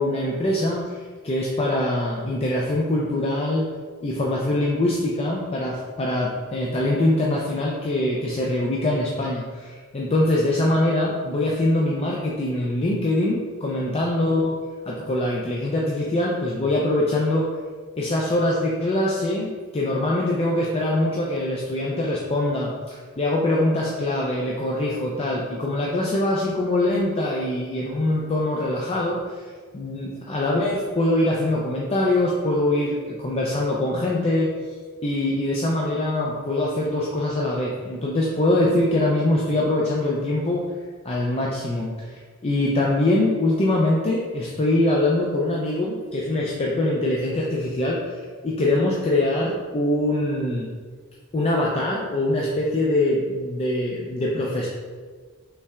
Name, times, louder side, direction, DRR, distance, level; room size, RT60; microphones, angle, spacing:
voice 1, 0.0-3.7 4.0-14.5 14.9-17.5 18.0-29.2 29.7-34.5 35.0-40.6 41.0-42.2 42.4-50.7 51.3-54.7, left 1 dB, 30° left, -3 dB, 0.4 m, -23 dB
5.5 x 3.3 x 2.3 m, 1.5 s
head